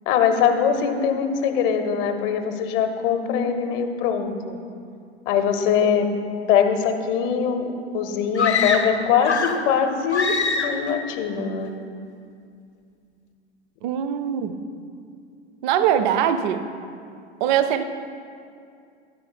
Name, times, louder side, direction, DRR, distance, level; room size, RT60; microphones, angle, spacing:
voice 1, 0.1-4.6 5.3-6.1 6.5-7.6 7.9-11.7, left 7 dB, 40° left, 7 dB, 0.8 m, -22 dB
sound 1, 8.3-9.7 10.1-10.9, left 4 dB, 90° left, 0.6 m, -24 dB
voice 2, 13.8-14.6 15.6-16.6 17.4-17.8, right 9 dB, 45° right, 11 dB, 0.5 m, -22 dB
9.5 x 4.5 x 5.6 m, 2.4 s
figure-of-eight pair, 85°, 33 cm